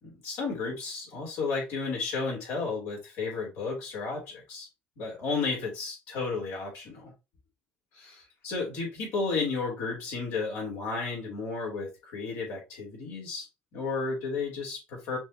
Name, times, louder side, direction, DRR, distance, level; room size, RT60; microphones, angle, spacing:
voice 1, 0.2-4.7 5.0-7.1 7.9-13.5 13.7-15.2, left 4 dB, 80° left, 2.8 m, -33 dB
5.9 x 2.7 x 2.9 m
supercardioid pair, 85°, 5 cm